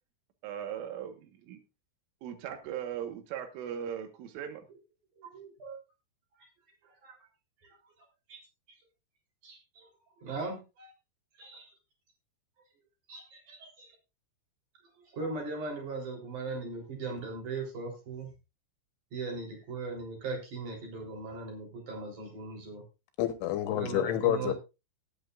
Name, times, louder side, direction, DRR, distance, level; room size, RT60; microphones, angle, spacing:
voice 1, 0.4-1.6 2.2-4.7, right 9 dB, 80° right, 3.9 m, -38 dB
voice 2, 5.1-5.8 6.4-6.5 6.8-7.3 7.6-7.9 8.3-8.4 9.4-9.9 10.2-10.9 11.4-11.7 13.1-14.0 14.8-18.3 19.1-22.8 23.7-24.5, right 3 dB, 40° right, 4.6 m, -39 dB
voice 3, 23.2-24.5, left 11 dB, 75° left, 3.4 m, -28 dB
19.0 x 8.9 x 2.5 m
omnidirectional pair, 5.7 m